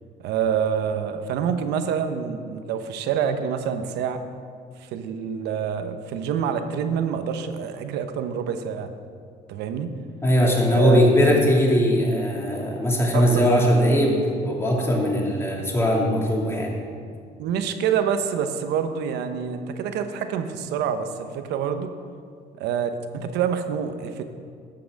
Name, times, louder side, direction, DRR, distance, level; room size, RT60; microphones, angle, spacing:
voice 1, 0.2-4.2 4.9-8.9 9.5-9.9 10.7-11.0 13.1-13.5 17.4-21.9 22.6-24.2, right 7 dB, 85° right, 8 dB, 0.9 m, -26 dB
voice 2, 10.2-16.8, equal, 15° left, -2 dB, 2.4 m, -20 dB
11.5 x 5.9 x 7.4 m, 2.2 s
cardioid pair, 110°, 17 cm